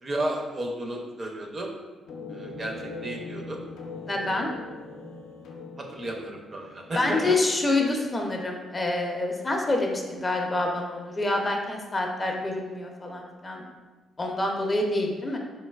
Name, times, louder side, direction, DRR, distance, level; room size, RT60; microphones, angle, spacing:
voice 1, 0.0-1.7 2.3-3.6 5.8-7.2, right 1 dB, 35° right, 1 dB, 0.4 m, -33 dB
sound 1, 2.1-8.2, left 2 dB, 85° left, 0.4 m, -41 dB
voice 2, 4.1-4.5 7.0-13.6 14.2-15.4, left 2 dB, 25° left, 1 dB, 0.4 m, -27 dB
3.2 x 2.8 x 2.2 m, 1.3 s
cardioid pair, 90°, 0 cm